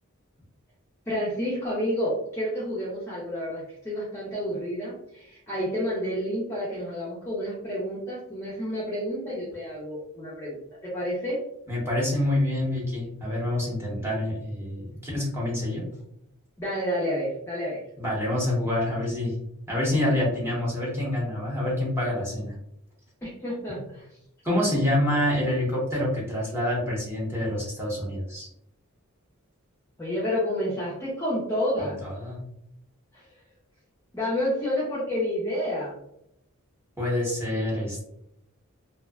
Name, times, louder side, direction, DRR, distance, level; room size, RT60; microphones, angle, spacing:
voice 1, 1.1-10.6 10.8-11.4 16.6-17.8 23.2-24.0 30.0-32.0 33.1-33.2 34.1-35.9, equal, 15° left, -8 dB, 0.5 m, -29 dB
voice 2, 11.7-15.8 18.0-19.3 19.7-22.5 24.4-28.5 31.8-32.4 37.0-38.0, left 1 dB, 10° right, -5 dB, 0.9 m, -27 dB
2.7 x 2.1 x 2.2 m, 0.78 s
head